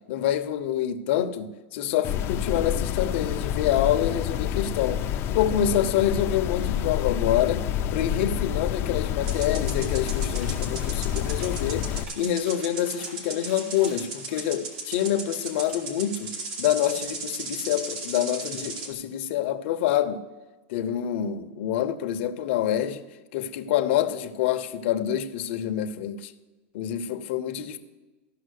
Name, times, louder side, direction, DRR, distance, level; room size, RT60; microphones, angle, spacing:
voice 1, 0.1-5.0 5.3-7.6 7.9-16.3 16.6-20.2 20.7-23.0 23.3-26.3 26.7-27.8, left 10 dB, 60° left, 0.9 m, -26 dB
sound 1, 2.0-12.0, left 10 dB, 35° left, 0.6 m, -28 dB
sound 2, 9.2-18.9, right 3 dB, 50° right, 2.2 m, -37 dB
sound 3, 9.2-9.4 9.6-10.5 10.8-11.6 11.9-13.1 13.4-15.0 15.3-15.8, right 1 dB, 75° right, 4.1 m, -49 dB
14.0 x 6.0 x 6.5 m
supercardioid pair, 135°, 7 cm